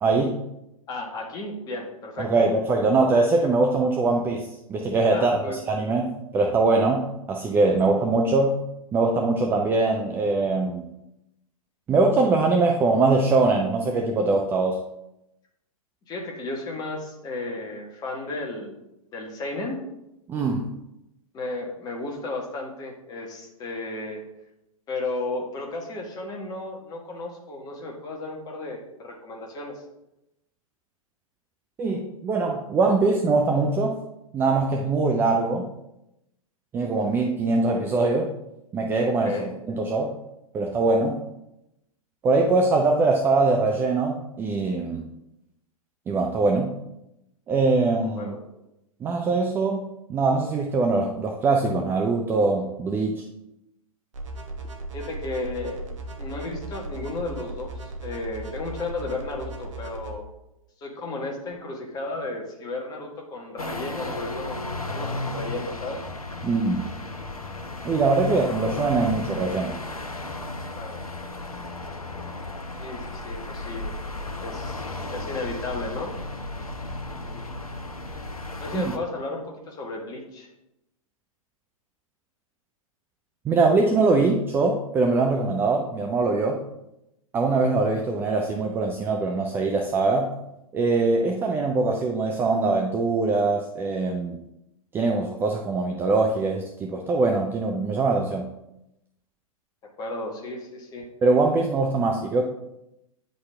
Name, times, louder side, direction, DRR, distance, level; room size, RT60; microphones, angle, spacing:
voice 1, 0.0-0.4 2.2-8.6 8.9-10.8 11.9-14.8 20.3-20.7 31.8-34.0 34.3-35.7 36.7-38.3 38.7-39.4 39.7-40.2 40.5-41.2 42.2-45.0 46.1-46.7 47.5-48.3 49.0-53.2 66.4-66.9 67.8-69.7 78.7-78.8 83.4-86.6 87.3-90.3 90.7-94.4 94.9-98.5 101.2-102.4, right 3 dB, 10° right, 2 dB, 0.4 m, -22 dB
voice 2, 0.9-2.3 5.1-5.6 16.1-18.8 19.1-19.8 21.3-24.2 24.9-29.8 39.2-39.5 48.2-48.4 54.9-55.9 56.2-60.3 60.8-64.6 64.9-66.0 70.7-71.0 72.8-73.9 74.4-76.1 77.2-77.5 78.6-80.5 100.0-101.1, left 2 dB, 20° left, 0 dB, 1.4 m, -34 dB
sound 1, 54.1-60.1, right 2 dB, 60° right, 1.1 m, -37 dB
sound 2, 63.6-79.0, left 2 dB, 85° left, 0.8 m, -34 dB
9.3 x 4.0 x 3.5 m, 0.88 s
figure-of-eight pair, 110°, 18 cm